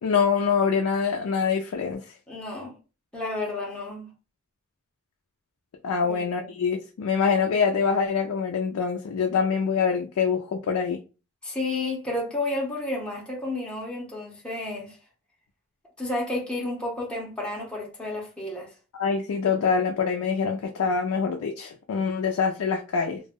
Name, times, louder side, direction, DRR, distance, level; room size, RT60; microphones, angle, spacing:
voice 1, 0.0-2.0 5.8-11.0 19.0-23.2, left 6 dB, 85° left, 0.4 m, -25 dB
voice 2, 2.3-2.7 3.1-4.1 6.0-6.5 11.4-15.0 16.0-18.7, left 2 dB, 5° left, 0.6 m, -31 dB
2.3 x 2.0 x 3.5 m
head